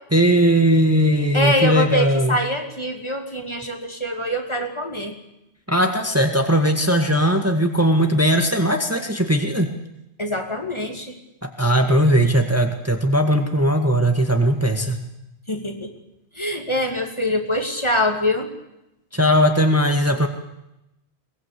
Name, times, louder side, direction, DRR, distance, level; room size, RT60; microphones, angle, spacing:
voice 1, 0.1-2.4 5.7-9.7 11.4-15.0 19.1-20.3, equal, 15° right, 4 dB, 1.8 m, -18 dB
voice 2, 1.3-5.1 10.2-11.2 15.5-15.9 16.3-18.5, left 1 dB, 25° left, 3 dB, 2.8 m, -24 dB
22.5 x 20.0 x 8.4 m, 0.88 s
omnidirectional pair, 1.1 m